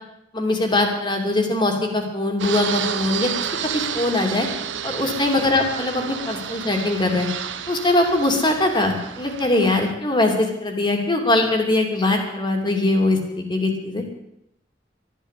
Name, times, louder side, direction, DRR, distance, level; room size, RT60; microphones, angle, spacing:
voice 1, 0.3-3.3 3.7-4.5 4.8-7.3 7.7-14.0, left 2 dB, 25° left, 2 dB, 2.8 m, -21 dB
Fixed-wing aircraft airplane, 2.4-9.9, right 7 dB, 90° right, 1.0 m, -30 dB
13.0 x 12.0 x 8.4 m, 0.80 s
head